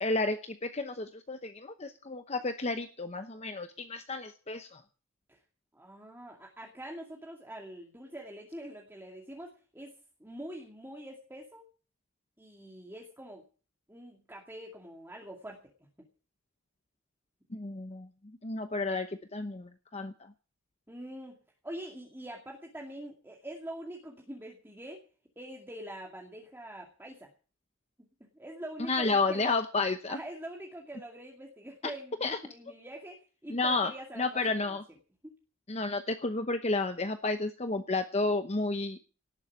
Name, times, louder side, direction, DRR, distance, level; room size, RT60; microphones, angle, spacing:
voice 1, 0.0-4.8 17.5-18.1 18.4-20.3 28.9-30.2 32.2-32.4 33.5-33.9 34.2-34.8 35.7-39.0, left 3 dB, 30° left, 8 dB, 0.9 m, -31 dB
voice 2, 5.7-9.9 10.2-11.7 12.4-13.4 13.9-16.1 20.9-21.4 21.6-25.0 25.4-27.3 28.2-29.5 30.1-34.8 35.2-35.3, right 1 dB, 10° right, -1 dB, 2.3 m, -44 dB
18.0 x 7.4 x 8.6 m, 0.38 s
head